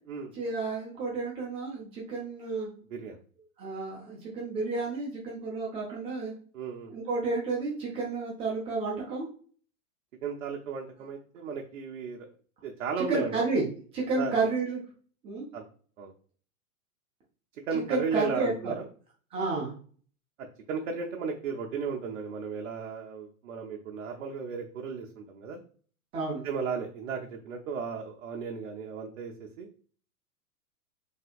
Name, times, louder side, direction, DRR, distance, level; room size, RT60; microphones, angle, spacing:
voice 1, 0.3-2.7 3.6-6.3 6.9-9.3 13.0-13.7 13.9-14.8 15.2-15.5 17.7-18.8 19.3-19.7 26.1-26.5, right 3 dB, 15° right, -4 dB, 0.4 m, -31 dB
voice 2, 6.5-6.9 10.2-12.3 12.6-13.4 14.2-14.3 15.5-15.6 16.0-16.1 17.7-18.7 20.7-25.6 26.4-29.7, right 5 dB, 60° right, 1 dB, 0.6 m, -34 dB
3.3 x 2.7 x 2.4 m, 0.43 s
figure-of-eight pair, 110°, 44 cm